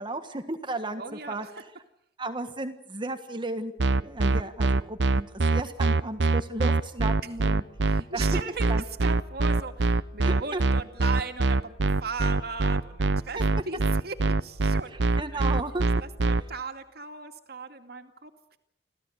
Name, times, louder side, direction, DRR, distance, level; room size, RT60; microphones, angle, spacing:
voice 1, 0.0-1.5 2.2-8.4 8.7-8.8 10.2-10.6 13.3-13.4 14.9-15.8, right 2 dB, 25° right, 7 dB, 1.5 m, -34 dB
voice 2, 1.0-1.5 7.9-13.8 14.0-15.6 16.0-18.6, right 4 dB, 60° right, 6 dB, 2.4 m, -38 dB
sound 1, 3.8-16.4, right 3 dB, 85° right, 0.8 m, -23 dB
26.5 x 16.0 x 8.1 m, 0.75 s
head